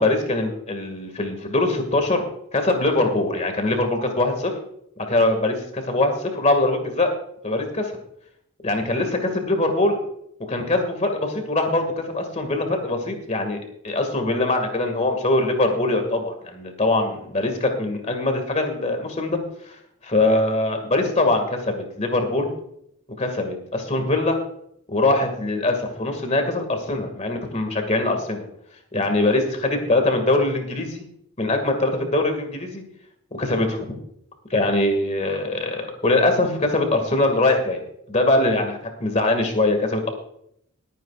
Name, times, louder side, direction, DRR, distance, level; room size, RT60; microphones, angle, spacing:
voice 1, 0.0-2.2 2.5-4.5 5.1-7.1 7.4-7.9 8.6-10.0 10.5-19.4 19.6-19.7 20.0-22.5 23.2-24.4 24.9-28.4 28.9-31.0 31.4-32.8 33.4-33.9 34.5-37.8 38.1-40.1, left 2 dB, 30° left, 5 dB, 2.0 m, -22 dB
21.5 x 9.2 x 2.5 m, 0.72 s
head